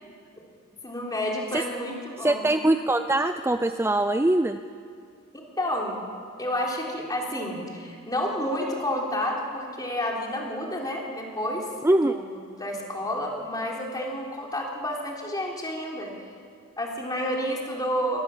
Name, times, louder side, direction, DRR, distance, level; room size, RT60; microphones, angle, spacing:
voice 1, 0.8-2.5 5.6-6.0 6.4-11.7 12.0-16.1 16.8-18.2, left 1 dB, 20° left, -1 dB, 3.7 m, -30 dB
voice 2, 2.2-4.6 11.8-12.1, right 1 dB, 10° right, 9 dB, 0.5 m, -22 dB
24.0 x 18.5 x 7.4 m, 2.3 s
head